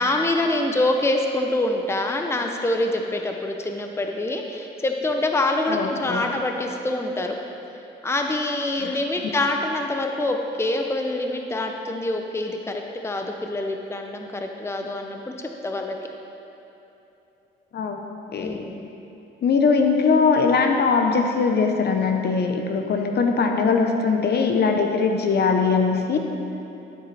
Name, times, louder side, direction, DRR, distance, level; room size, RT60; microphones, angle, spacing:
voice 1, 0.0-7.3 8.0-15.2 15.6-15.9 18.4-18.9, left 2 dB, 15° left, 3 dB, 0.8 m, -25 dB
voice 2, 5.7-6.3 8.8-8.9 17.7-18.1 18.3-18.7 19.4-26.2, left 5 dB, 55° left, 4 dB, 1.1 m, -21 dB
12.5 x 7.9 x 4.3 m, 3.0 s
cardioid pair, 90°, 20 cm